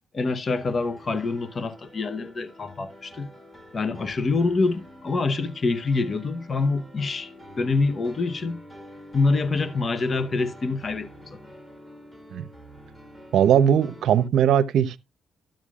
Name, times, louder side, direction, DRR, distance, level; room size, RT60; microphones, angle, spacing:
voice 1, 0.1-3.3 3.7-7.3 7.6-8.6 9.1-11.4, left 3 dB, 40° left, 0.9 m, -26 dB
sound 1, 0.6-14.3, equal, 5° left, 2.1 m, -47 dB
voice 2, 13.3-15.0, right 9 dB, 75° right, 0.7 m, -19 dB
12.5 x 8.9 x 2.4 m
cardioid pair, 90°, 0 cm